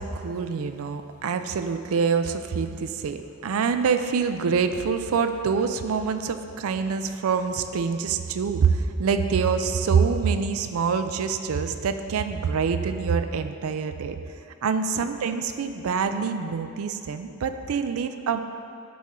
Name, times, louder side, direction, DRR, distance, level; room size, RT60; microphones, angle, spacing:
voice 1, 0.0-14.2 14.6-18.4, right 5 dB, 75° right, 8 dB, 0.4 m, -25 dB
10.0 x 4.2 x 3.7 m, 2.6 s
head